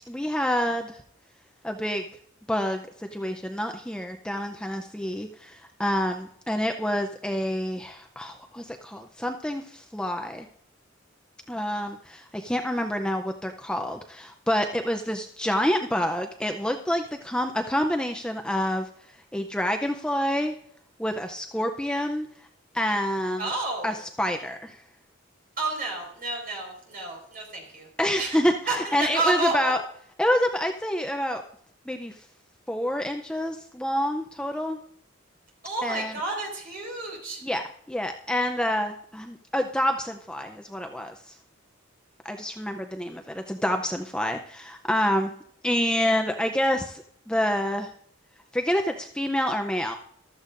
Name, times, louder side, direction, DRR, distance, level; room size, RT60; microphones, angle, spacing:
voice 1, 0.1-1.0 1.6-2.0 2.5-10.5 11.5-18.9 19.3-20.5 21.0-22.3 22.7-23.5 23.8-24.8 28.0-29.8 30.2-31.4 31.9-32.1 32.7-34.8 35.8-36.1 37.4-41.3 42.2-45.3 45.6-47.9 48.5-50.0, equal, 5° left, 5 dB, 0.5 m, -27 dB
voice 2, 23.4-23.9 25.6-27.9 28.2-28.4 28.7-29.7 35.6-37.4, right 3 dB, 45° right, 1 dB, 4.7 m, -30 dB
14.5 x 13.0 x 2.5 m, 0.66 s
head